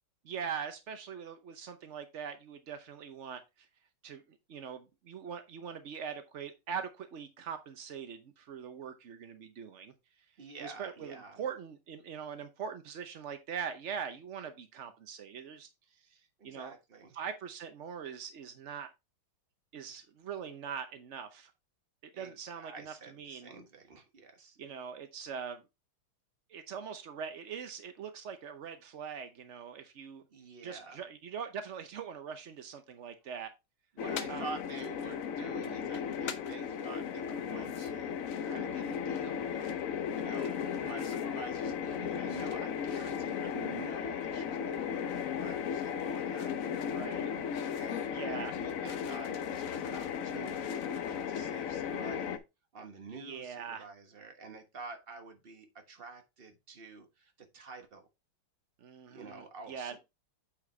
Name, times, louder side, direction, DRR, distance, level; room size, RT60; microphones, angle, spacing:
voice 1, 0.2-3.7 4.0-9.9 10.6-15.7 16.1-16.7 17.1-18.9 19.7-21.5 22.2-23.5 24.6-25.6 26.5-30.2 30.6-33.5 34.3-34.4 40.3-41.0 46.8-47.3 48.1-48.5 53.1-53.9 58.8-60.0, right 7 dB, 75° right, 0.6 m, -42 dB
voice 2, 10.4-11.4 16.4-17.1 22.1-24.6 30.3-31.0 33.9-39.8 40.1-47.0 47.6-52.4 52.7-58.1 59.1-60.0, right 4 dB, 35° right, 1.2 m, -48 dB
sound 1, 34.0-52.4, left 8 dB, 75° left, 0.7 m, -35 dB
8.6 x 5.0 x 3.2 m
omnidirectional pair, 2.3 m